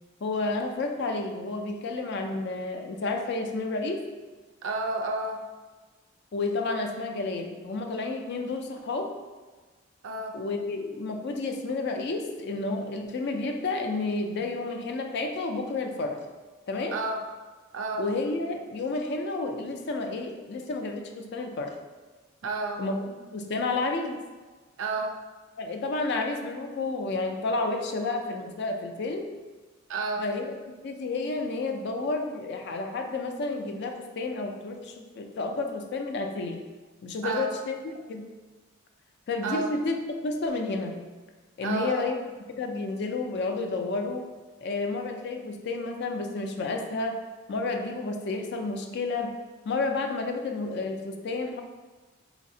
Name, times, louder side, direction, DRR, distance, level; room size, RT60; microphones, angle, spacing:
voice 1, 0.2-4.0 6.3-9.1 10.3-16.2 16.7-17.0 18.0-21.8 22.8-24.2 25.6-29.3 30.2-30.5 30.8-36.6 37.0-37.7 38.1-38.3 39.3-40.0 40.2-41.0 41.6-42.2 42.5-44.2 44.6-47.2 47.5-49.3 49.6-51.6, left 3 dB, 50° left, 4 dB, 0.4 m, -31 dB
voice 2, 4.6-5.4 10.0-10.4 16.9-17.2 17.7-18.0 22.4-22.8 24.8-25.2 29.9-30.2 37.2-37.5 39.4-39.7 41.6-42.1, right 3 dB, 65° right, 3 dB, 0.4 m, -30 dB
4.0 x 2.8 x 2.6 m, 1.3 s
head